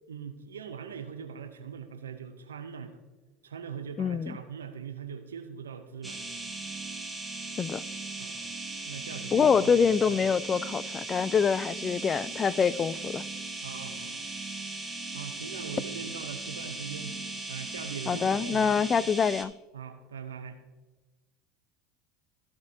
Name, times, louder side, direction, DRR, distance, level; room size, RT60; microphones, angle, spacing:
voice 1, 0.1-3.0 3.4-6.2 8.2-8.6 8.8-10.2 13.6-14.3 15.1-17.2 17.5-18.8 19.7-20.6, right 7 dB, 90° right, 0.6 m, -41 dB
voice 2, 4.0-4.4 7.6-7.8 9.3-13.2 18.1-19.5, left 6 dB, 30° left, 0.3 m, -25 dB
sound 1, 6.0-19.5, right 2 dB, 10° right, 1.1 m, -38 dB
15.0 x 5.2 x 2.7 m
hypercardioid pair, 80°, 0 cm